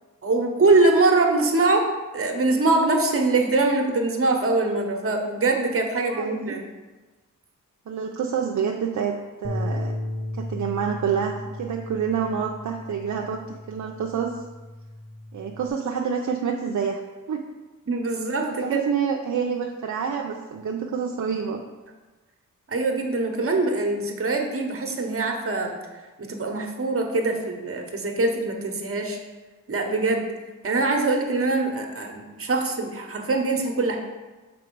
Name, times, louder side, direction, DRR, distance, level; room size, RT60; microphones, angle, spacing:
voice 1, 0.2-1.9 2.1-6.6 17.9-18.8 22.7-25.8 26.2-29.2 29.7-30.3 30.6-34.0, right 3 dB, 45° right, 3 dB, 1.0 m, -23 dB
voice 2, 6.1-6.5 7.9-9.1 9.4-9.9 10.3-14.4 15.3-17.0 17.3-17.5 18.1-21.6, right 7 dB, 60° right, 1 dB, 0.5 m, -28 dB
Bass guitar, 9.4-15.7, left 1 dB, 10° right, 0.7 m, -35 dB
6.1 x 4.3 x 4.6 m, 1.2 s
wide cardioid pair, 110°, 33 cm